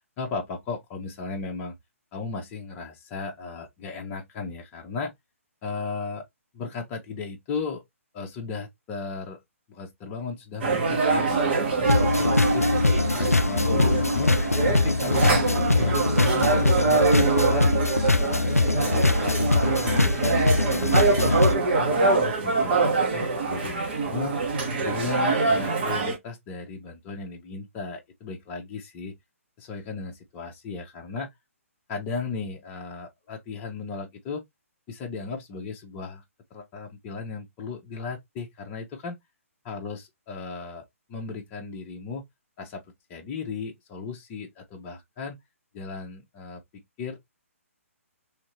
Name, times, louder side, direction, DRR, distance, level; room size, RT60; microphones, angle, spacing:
voice 1, 0.2-1.8 2.1-5.1 5.6-6.2 6.5-7.8 8.1-9.4 9.7-12.7 13.1-14.3 14.7-17.7 18.2-20.4 20.8-21.4 21.7-24.4 24.8-29.2 29.6-31.3 31.9-34.4 34.9-36.2 36.5-39.2 39.6-40.8 41.1-42.2 42.6-42.8 43.1-45.4 45.7-47.2, left 4 dB, 20° left, 0.7 m, -36 dB
sound 1, 10.6-26.2, right 4 dB, 45° right, 1.1 m, -24 dB
sound 2, 11.8-21.5, left 2 dB, 90° left, 0.4 m, -22 dB
3.2 x 2.7 x 3.0 m
figure-of-eight pair, 130°, 8 cm